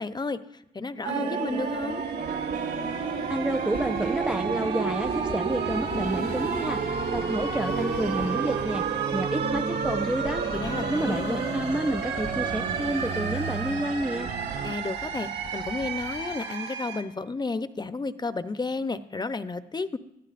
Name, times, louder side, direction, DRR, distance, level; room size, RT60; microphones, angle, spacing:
voice 1, 0.0-2.0 10.6-11.5 14.6-20.0, left 3 dB, 25° left, 12 dB, 0.7 m, -32 dB
sound 1, 1.0-17.0, right 6 dB, 70° right, 1.8 m, -31 dB
sound 2, 1.5-16.4, left 5 dB, 65° left, 1.1 m, -40 dB
sound 3, 2.2-14.8, right 7 dB, 50° right, 0.6 m, -36 dB
voice 2, 3.3-8.8 9.1-10.4 10.9-14.3, right 1 dB, 5° right, 7 dB, 0.4 m, -29 dB
18.0 x 12.5 x 2.6 m, 0.83 s
supercardioid pair, 65°, 18 cm